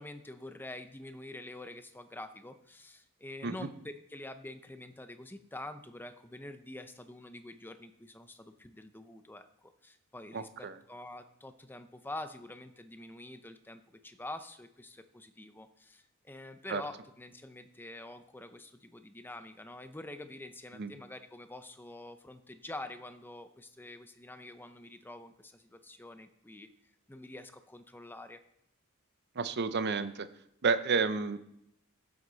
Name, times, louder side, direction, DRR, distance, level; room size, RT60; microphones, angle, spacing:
voice 1, 0.0-26.7 27.1-28.4, left 1 dB, 10° left, 9 dB, 0.6 m, -46 dB
voice 2, 10.3-10.8 16.7-16.8 20.7-20.9 29.4-30.3 30.6-31.5, right 4 dB, 50° right, 12 dB, 0.6 m, -31 dB
15.0 x 8.0 x 4.0 m, 0.78 s
head